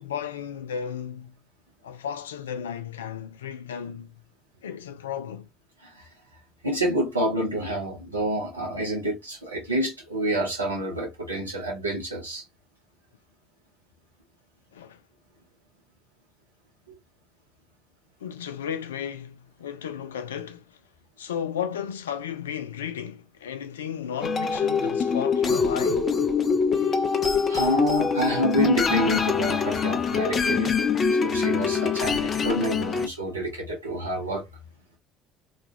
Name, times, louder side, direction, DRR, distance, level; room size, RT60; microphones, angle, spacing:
voice 1, 0.0-1.3 1.8-4.1 4.6-5.5 14.7-15.0 18.2-20.8 21.2-26.1, left 8 dB, 80° left, 0.3 m, -34 dB
voice 2, 6.6-12.4 27.5-30.8 31.1-34.5, right 1 dB, 90° right, 0.8 m, -28 dB
sound 1, 24.2-33.1, left 5 dB, 40° left, 0.6 m, -24 dB
3.1 x 2.3 x 2.5 m
figure-of-eight pair, 55°, 0 cm